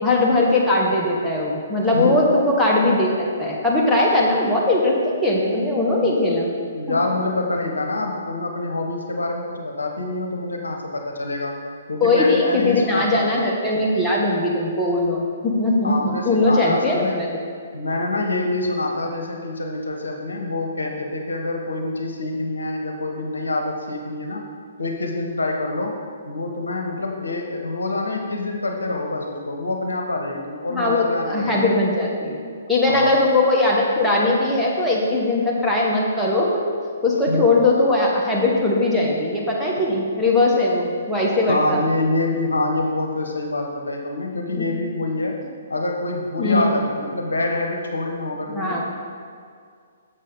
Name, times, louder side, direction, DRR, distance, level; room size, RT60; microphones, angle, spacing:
voice 1, 0.0-6.5 6.9-7.0 12.0-17.3 30.7-32.4 32.7-36.6 37.0-41.8 44.6-44.7 46.4-46.7 48.5-48.8, left 2 dB, 5° left, -5 dB, 1.1 m, -20 dB
voice 2, 1.9-2.2 6.7-11.6 11.9-13.3 15.8-17.3 17.7-24.5 24.8-25.9 26.3-31.7 32.9-33.1 37.3-37.5 41.5-45.4 45.7-48.8, left 2 dB, 70° left, 2 dB, 0.8 m, -26 dB
6.7 x 6.4 x 3.8 m, 2.2 s
figure-of-eight pair, 125°, 0 cm